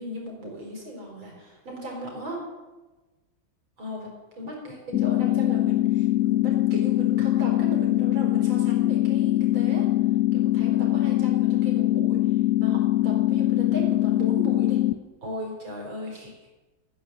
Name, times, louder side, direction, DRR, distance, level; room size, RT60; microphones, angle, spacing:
voice 1, 0.0-2.4 3.8-9.9 10.3-14.8 15.2-16.3, equal, 75° right, -1 dB, 5.2 m, -37 dB
sound 1, 4.9-14.9, left 15 dB, 80° left, 0.7 m, -22 dB
14.5 x 9.6 x 7.6 m, 1.2 s
omnidirectional pair, 2.2 m